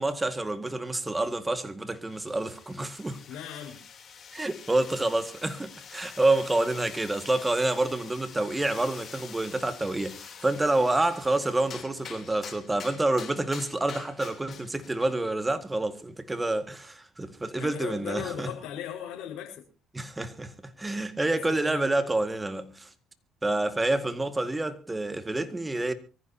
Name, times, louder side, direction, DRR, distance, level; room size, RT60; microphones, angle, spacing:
voice 1, 0.0-3.2 4.3-18.5 19.9-22.9 23.4-25.9, right 2 dB, 15° right, 1.9 m, -28 dB
sound 1, 2.1-15.2, left 7 dB, 45° left, 3.3 m, -46 dB
voice 2, 3.3-3.8 17.5-19.6 21.2-21.9, left 9 dB, 70° left, 5.0 m, -37 dB
24.0 x 14.5 x 2.9 m
cardioid pair, 105°, 0 cm